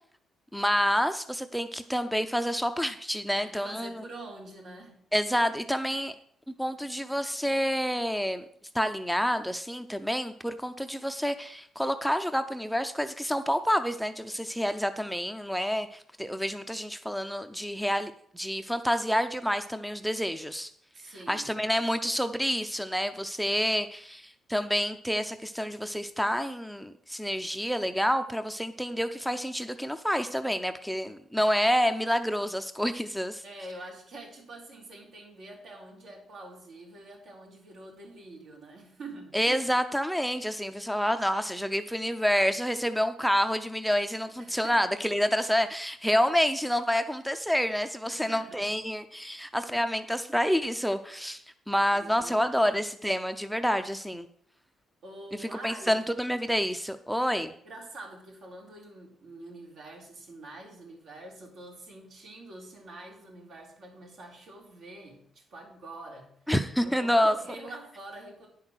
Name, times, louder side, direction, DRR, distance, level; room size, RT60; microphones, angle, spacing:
voice 1, 0.5-4.0 5.1-6.1 6.6-8.4 8.7-20.7 21.3-33.4 39.3-51.4 51.7-54.3 55.6-57.5 66.5-67.3, equal, ahead, 9 dB, 0.6 m, -28 dB
voice 2, 3.4-5.0 20.9-21.5 33.4-39.4 44.4-44.9 48.1-48.7 52.0-52.7 55.0-55.9 57.6-66.3 66.8-68.5, right 2 dB, 70° right, -1 dB, 3.8 m, -45 dB
9.9 x 5.8 x 6.3 m, 0.63 s
cardioid pair, 90°, 0 cm